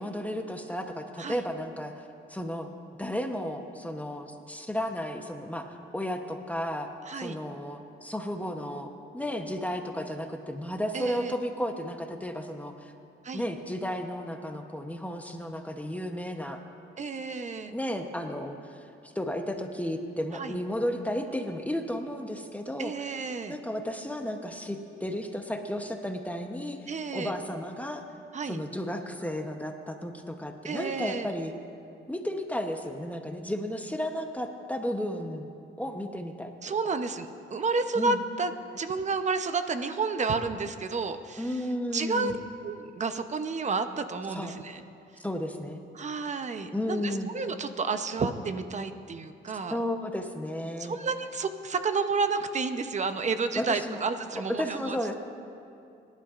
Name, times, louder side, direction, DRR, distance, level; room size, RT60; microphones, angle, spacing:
voice 1, 0.0-2.7 3.0-6.9 7.2-12.9 13.3-16.6 17.7-22.9 23.5-28.0 28.5-31.5 32.1-35.5 35.8-36.5 37.9-38.2 41.4-42.4 44.3-44.5 45.2-45.8 46.7-47.3 49.7-51.0 53.5-54.0 54.6-55.1, equal, 5° left, 4 dB, 0.9 m, -33 dB
voice 2, 7.1-7.4 10.9-11.3 13.2-13.4 17.0-17.8 20.3-20.6 22.8-23.6 26.9-27.3 28.3-28.6 30.6-31.3 36.6-41.6 41.9-42.4 42.6-44.8 45.9-49.8 50.8-55.1, right 4 dB, 35° right, 9 dB, 0.8 m, -31 dB
24.0 x 11.5 x 2.5 m, 2.6 s
cardioid pair, 90°, 20 cm